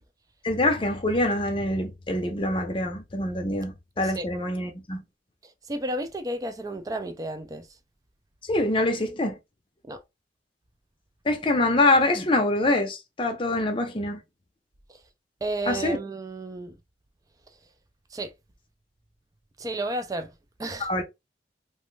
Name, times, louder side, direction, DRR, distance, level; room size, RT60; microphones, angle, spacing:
voice 1, 0.4-5.0 8.4-9.4 11.2-14.2 15.7-16.0 20.8-21.0, left 2 dB, 30° left, 0.6 m, -25 dB
voice 2, 5.7-7.7 9.8-10.0 15.4-16.7 18.1-18.3 19.6-20.3 20.6-20.9, right 1 dB, 20° right, 0.4 m, -32 dB
3.0 x 2.1 x 3.1 m
head